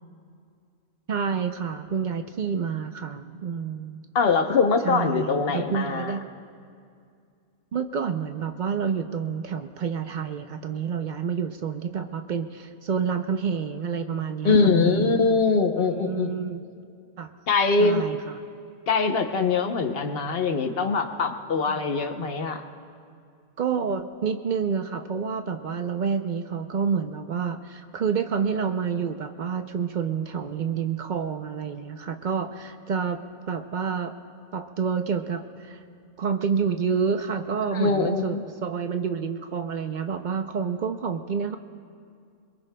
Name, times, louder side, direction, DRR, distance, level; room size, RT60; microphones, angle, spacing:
voice 1, 1.1-4.1 4.8-6.3 7.7-15.2 15.8-16.6 17.2-17.3 17.8-18.4 21.7-21.8 23.6-33.2 33.5-34.1 34.5-35.8 36.2-41.6, right 6 dB, 90° right, 6 dB, 0.4 m, -28 dB
voice 2, 4.1-6.1 14.4-16.3 17.5-18.0 18.9-22.6 37.7-38.4, left 4 dB, 50° left, 6 dB, 0.9 m, -23 dB
27.0 x 22.5 x 2.2 m, 2.4 s
omnidirectional pair, 1.5 m